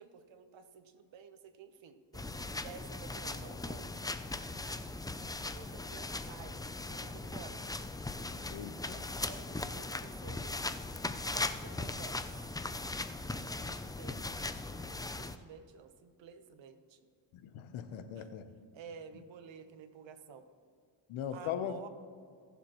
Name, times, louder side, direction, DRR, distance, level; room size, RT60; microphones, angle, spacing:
voice 1, 0.0-3.9 5.4-6.6 6.9-7.7 9.1-10.6 11.2-12.2 12.5-12.6 13.3-17.0 18.1-18.3 18.7-20.4 21.3-21.9, right 7 dB, 65° right, 9 dB, 1.2 m, -52 dB
sound 1, 2.1-15.4, left 2 dB, 10° left, 0.4 m, -39 dB
voice 2, 8.5-9.1 17.3-18.5 21.1-21.8, left 9 dB, 80° left, 10 dB, 0.9 m, -40 dB
19.5 x 7.2 x 3.1 m, 2.2 s
cardioid pair, 75°, 48 cm